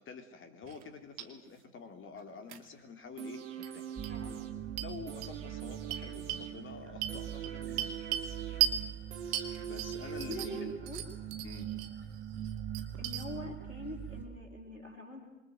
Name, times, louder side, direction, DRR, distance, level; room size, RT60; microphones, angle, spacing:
voice 1, 0.0-3.9 4.8-7.9 8.7-8.8 9.7-10.8 11.4-11.7, left 5 dB, 30° left, 7 dB, 3.6 m, -48 dB
sound 1, 0.6-0.9 1.2-1.3 2.5-2.6 3.6-3.7 4.0-4.1 4.8-4.9 5.2-5.3 5.9-6.5 7.0-8.3 8.6-8.8 9.3-10.6 10.9-11.9 12.3-13.3, right 12 dB, 55° right, 2.7 m, -35 dB
sound 2, 3.2-11.1 11.5-11.6, right 8 dB, 70° right, 3.1 m, -44 dB
sound 3, 4.0-14.3, right 10 dB, 30° right, 5.4 m, -43 dB
voice 2, 4.1-4.4 10.2-11.0 13.0-15.3, left 1 dB, 85° left, -2 dB, 4.3 m, -44 dB
27.5 x 24.5 x 8.0 m, 0.93 s
figure-of-eight pair, 70°, 37 cm